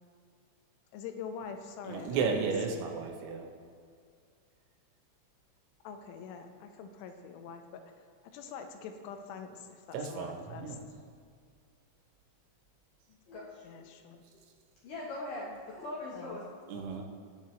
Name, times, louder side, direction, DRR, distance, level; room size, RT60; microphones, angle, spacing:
voice 1, 0.9-2.8 5.8-7.8 8.3-10.8 13.6-14.2 16.1-16.3, left 6 dB, 90° left, 6 dB, 3.2 m, -45 dB
voice 2, 1.9-3.5 9.9-10.8 16.7-17.0, right 5 dB, 85° right, 3 dB, 3.5 m, -33 dB
voice 3, 13.1-13.9 14.3-14.4 14.8-16.4, left 2 dB, 70° left, -6 dB, 2.0 m, -41 dB
20.5 x 7.0 x 3.2 m, 2.1 s
omnidirectional pair, 5.4 m